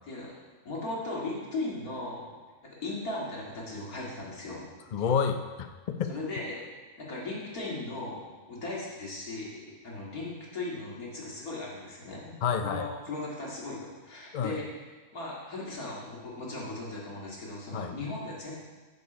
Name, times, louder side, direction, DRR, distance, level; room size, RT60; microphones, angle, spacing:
voice 1, 0.0-0.4 0.6-2.4 2.6-4.7 6.1-6.7 7.0-18.5, left 2 dB, 90° left, -4 dB, 2.6 m, -37 dB
voice 2, 4.9-6.1 12.4-12.9 14.3-14.6 17.7-17.9, left 6 dB, 55° left, 7 dB, 0.5 m, -29 dB
12.0 x 5.3 x 5.0 m, 1.4 s
omnidirectional pair, 1.5 m